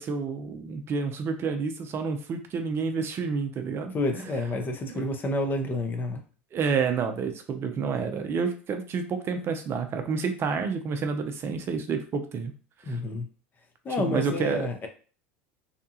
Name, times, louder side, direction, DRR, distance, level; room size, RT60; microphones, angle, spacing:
voice 1, 0.0-3.9 6.5-12.5 12.9-13.0 14.0-14.9, right 5 dB, 40° right, 6 dB, 0.5 m, -29 dB
voice 2, 3.9-6.2 12.8-13.3 13.8-14.9, left 2 dB, 30° left, 5 dB, 0.7 m, -29 dB
2.8 x 2.2 x 2.7 m, 0.38 s
hypercardioid pair, 90°, 7 cm